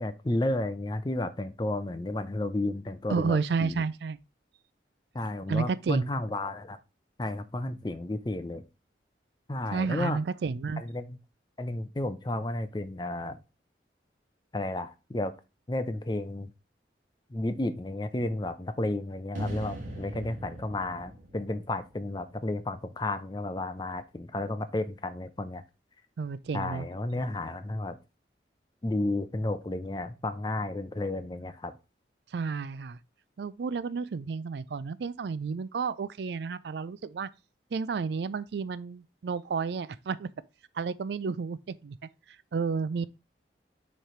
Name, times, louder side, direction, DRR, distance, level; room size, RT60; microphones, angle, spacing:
voice 1, 0.0-3.8 5.1-6.8 7.2-8.6 9.5-10.2 10.8-11.2 11.6-13.4 14.5-15.3 15.7-16.5 17.3-25.6 26.5-28.0 28.8-31.7, left 2 dB, 25° left, 0.5 m, -32 dB
voice 2, 3.1-4.2 5.5-6.2 9.7-10.8 26.2-26.9 32.3-33.0 33.4-37.3 37.7-40.3 40.8-42.0 42.5-43.0, right 5 dB, 70° right, 0.4 m, -31 dB
sound 1, 19.3-22.5, equal, 45° right, 1.6 m, -40 dB
6.4 x 3.3 x 4.4 m
head